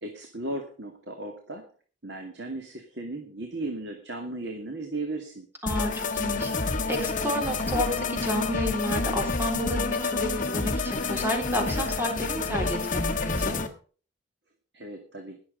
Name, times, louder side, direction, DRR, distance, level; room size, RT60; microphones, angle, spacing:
voice 1, 0.0-1.7 2.0-5.5 14.7-15.4, right 2 dB, 60° right, 4 dB, 2.2 m, -36 dB
voice 2, 5.6-13.6, left 1 dB, 10° right, 3 dB, 4.0 m, -31 dB
sound 1, 5.7-13.7, left 3 dB, 40° left, 1.8 m, -28 dB
19.5 x 7.7 x 5.2 m, 0.41 s
head